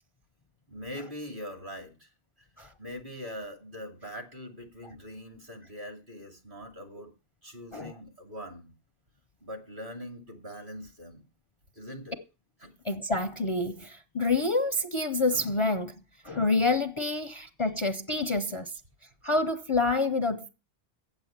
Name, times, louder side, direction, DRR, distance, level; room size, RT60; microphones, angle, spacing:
voice 1, 0.7-2.1 2.4-2.5 2.8-7.1 7.4-8.7 9.4-11.2 11.7-12.2 12.6-12.7 17.6-17.8, equal, 55° right, 2.8 m, -42 dB
voice 2, 12.9-15.9 16.2-18.7 19.2-20.5, left 3 dB, 35° left, 0.6 m, -27 dB
8.7 x 8.0 x 7.2 m
omnidirectional pair, 1.0 m